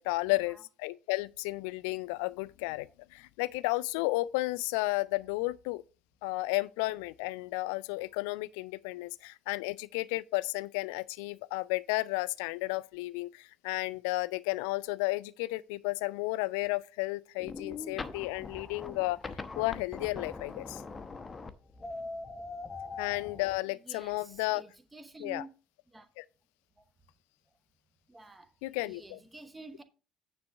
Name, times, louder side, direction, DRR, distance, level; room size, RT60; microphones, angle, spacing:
voice 1, 0.0-5.8 6.2-20.8 23.0-24.6 25.2-25.5 26.2-26.3 28.6-29.2, left 21 dB, 65° left, 0.4 m, -33 dB
sound 1, 17.4-23.6, left 4 dB, 25° left, 0.8 m, -42 dB
voice 2, 23.8-25.5 25.9-26.1 26.8-26.9 28.1-28.5 28.8-29.8, right 2 dB, 15° right, 1.1 m, -49 dB
9.5 x 3.4 x 6.4 m
figure-of-eight pair, 60°, 0 cm